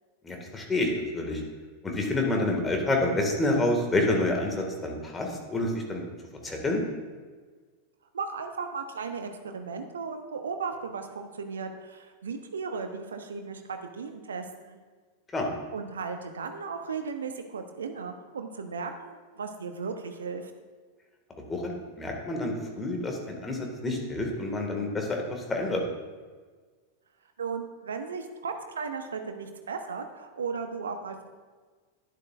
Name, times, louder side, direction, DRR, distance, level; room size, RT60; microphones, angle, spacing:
voice 1, 0.2-1.4 1.8-6.1 6.4-6.8 15.3-15.5 21.5-25.8, left 2 dB, 15° left, 1 dB, 1.9 m, -28 dB
voice 2, 8.1-14.8 15.7-20.5 27.4-31.3, right 5 dB, 70° right, 6 dB, 0.9 m, -36 dB
11.5 x 10.5 x 2.5 m, 1.4 s
figure-of-eight pair, 90°, 0 cm